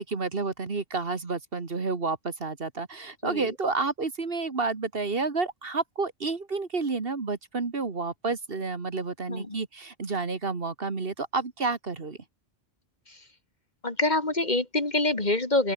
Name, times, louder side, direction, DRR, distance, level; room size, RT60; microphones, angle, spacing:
voice 1, 0.0-12.2, right 4 dB, 55° right, 2.0 m, -30 dB
voice 2, 13.8-15.7, left 2 dB, 40° left, 2.6 m, -26 dB
open air
omnidirectional pair, 1.2 m